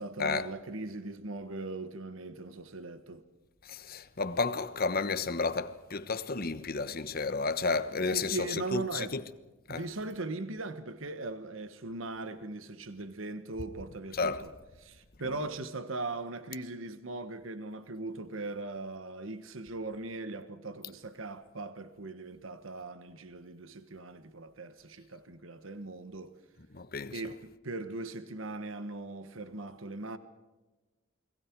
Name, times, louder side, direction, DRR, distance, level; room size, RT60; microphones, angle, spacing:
voice 1, 0.0-3.2 8.1-9.1 9.7-14.5 14.8-26.3 27.1-30.2, right 2 dB, 70° right, 1.4 m, -39 dB
voice 2, 3.6-9.2 9.7-9.8 14.1-14.5 26.7-27.2, left 4 dB, 45° left, 1.2 m, -32 dB
29.5 x 22.5 x 4.7 m
head